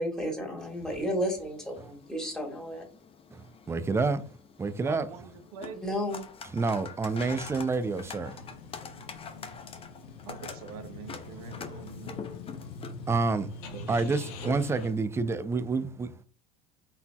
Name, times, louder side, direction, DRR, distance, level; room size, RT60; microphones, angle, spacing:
voice 1, 0.0-2.8 5.8-6.2, equal, 5° left, 1.8 m, -32 dB
sound 1, 0.6-15.1, left 6 dB, 30° left, 0.7 m, -46 dB
voice 2, 3.7-4.2 4.6-5.1 6.5-8.4 13.1-13.5 13.9-16.2, right 4 dB, 15° right, 0.4 m, -28 dB
voice 3, 4.8-5.8 10.2-12.2 13.6-13.9, right 7 dB, 70° right, 0.8 m, -44 dB
sound 2, 6.0-14.9, left 2 dB, 70° left, 0.8 m, -44 dB
4.1 x 3.9 x 2.3 m
hypercardioid pair, 75°, 20 cm